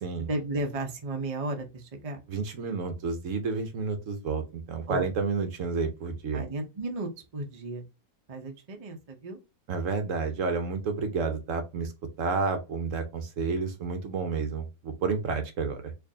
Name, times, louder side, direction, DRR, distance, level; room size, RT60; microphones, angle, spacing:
voice 1, 0.2-2.2 4.9-5.1 6.3-7.8 8.3-9.4, right 2 dB, 35° right, 0.6 m, -34 dB
voice 2, 2.3-6.4 9.7-11.9 12.2-15.9, right 4 dB, 65° right, 1.0 m, -30 dB
4.5 x 2.6 x 2.7 m
omnidirectional pair, 1.5 m